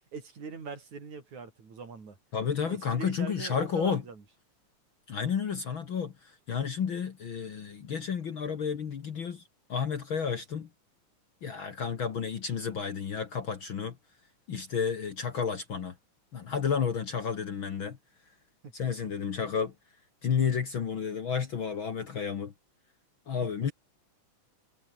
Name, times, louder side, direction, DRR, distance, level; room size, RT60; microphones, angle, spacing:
voice 1, 0.1-2.2 2.6-4.2 18.6-19.1, right 5 dB, 65° right, 5.9 m, -42 dB
voice 2, 2.3-4.0 5.1-9.4 9.7-10.7 11.4-14.0 14.5-15.9 16.3-18.0 18.7-19.7 20.2-22.5 23.3-23.7, left 6 dB, 50° left, 2.0 m, -31 dB
omnidirectional pair, 3.6 m